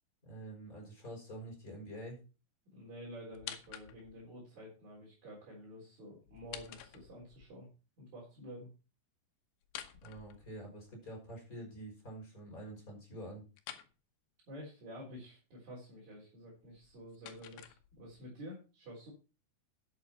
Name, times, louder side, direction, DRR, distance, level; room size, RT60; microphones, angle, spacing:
voice 1, 0.2-2.2 10.0-13.4, right 1 dB, 20° left, 0 dB, 5.5 m, -47 dB
voice 2, 2.7-7.7 8.0-8.7 14.5-19.1, equal, 45° right, -5 dB, 4.9 m, -50 dB
sound 1, 3.3-4.3 6.3-7.5 9.6-10.9 13.6-13.9 16.6-18.3, left 11 dB, 75° left, 3.0 m, -49 dB
11.5 x 8.4 x 4.3 m, 0.33 s
omnidirectional pair, 4.9 m